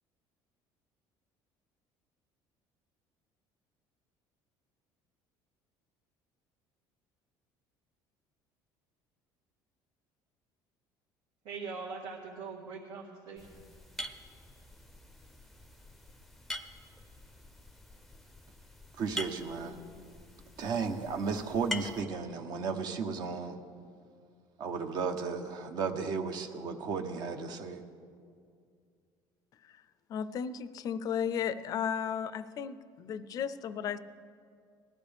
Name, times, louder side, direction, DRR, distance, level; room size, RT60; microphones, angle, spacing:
voice 1, 11.4-13.6, right 4 dB, 75° right, -4 dB, 1.8 m, -42 dB
sound 1, 13.4-22.0, left 1 dB, ahead, 0.6 m, -44 dB
voice 2, 19.0-19.8 20.6-23.6 24.6-27.8, right 5 dB, 50° right, 6 dB, 0.9 m, -34 dB
voice 3, 30.1-34.0, left 8 dB, 45° left, 14 dB, 0.5 m, -34 dB
19.5 x 14.0 x 3.5 m, 2.2 s
cardioid pair, 145°, 9 cm